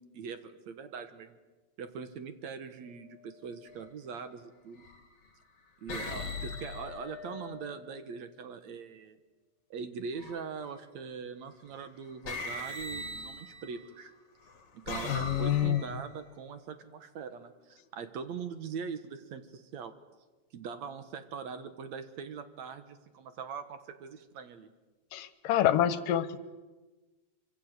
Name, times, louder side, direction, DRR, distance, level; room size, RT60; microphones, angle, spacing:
voice 1, 0.0-1.4 1.8-4.9 5.8-9.2 9.7-14.1 14.7-19.9 20.5-24.7, right 6 dB, 60° right, 9 dB, 2.4 m, -42 dB
sound 1, 3.6-3.9 4.8-5.3 5.9-7.9 10.1-10.7 11.7-11.9 12.3-13.9 14.5-16.2, left 3 dB, 45° left, 3.4 m, -40 dB
voice 2, 15.1-15.8 25.1-26.4, left 11 dB, 80° left, 13 dB, 2.8 m, -27 dB
25.5 x 25.0 x 8.1 m, 1.2 s
omnidirectional pair, 3.9 m